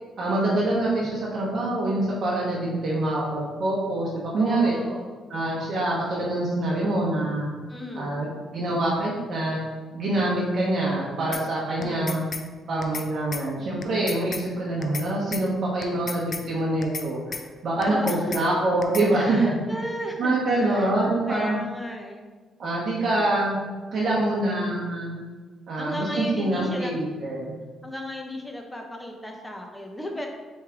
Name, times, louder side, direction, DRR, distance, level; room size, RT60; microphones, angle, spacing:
voice 1, 0.2-4.7 5.3-7.5 7.9-9.6 9.9-12.2 12.7-17.4 17.6-19.6 20.2-21.6 22.6-23.6 23.9-25.2 25.7-27.6, right 2 dB, 55° right, -5 dB, 1.0 m, -25 dB
voice 2, 4.4-5.3 7.7-8.3 11.8-12.3 17.8-18.3 19.1-20.9 21.3-22.3 25.8-27.0 27.8-30.3, left 1 dB, 5° left, 2 dB, 0.7 m, -35 dB
sound 1, 11.3-11.4 11.8-12.4 12.8-13.1 13.3-13.4 13.8-14.4 14.8-15.1 15.3-15.4 15.8-16.4 16.8-17.1 17.3-17.4 17.8-18.4 18.8-19.1, left 5 dB, 50° left, 0.4 m, -33 dB
4.5 x 3.2 x 3.6 m, 1.4 s
cardioid pair, 90°, 0 cm